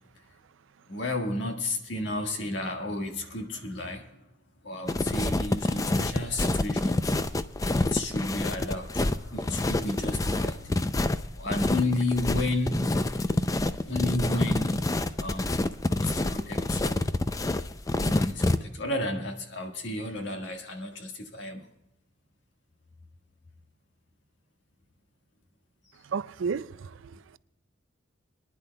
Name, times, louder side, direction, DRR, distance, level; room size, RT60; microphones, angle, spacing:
voice 1, 0.9-4.0 4.7-6.9 7.9-8.9 9.3-10.6 11.4-12.9 13.9-14.7 15.2-15.5 16.2-17.0 17.9-18.3 18.8-21.6, left 2 dB, 70° left, 1.6 m, -31 dB
sound 1, 4.9-18.6, left 2 dB, 15° left, 0.4 m, -27 dB
voice 2, 26.0-27.4, right 5 dB, 80° right, 0.4 m, -33 dB
27.5 x 10.5 x 2.3 m
head